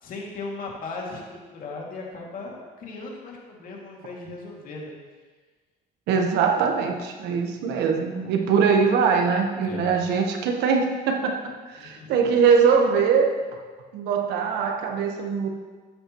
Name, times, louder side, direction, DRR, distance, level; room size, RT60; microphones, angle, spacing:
voice 1, 0.0-5.0 9.6-10.0 11.8-12.3, left 3 dB, 55° left, -2 dB, 2.5 m, -37 dB
voice 2, 6.1-13.4 13.9-15.5, right 6 dB, 85° right, 4 dB, 1.3 m, -22 dB
12.5 x 8.7 x 3.1 m, 1.4 s
cardioid pair, 110°, 17 cm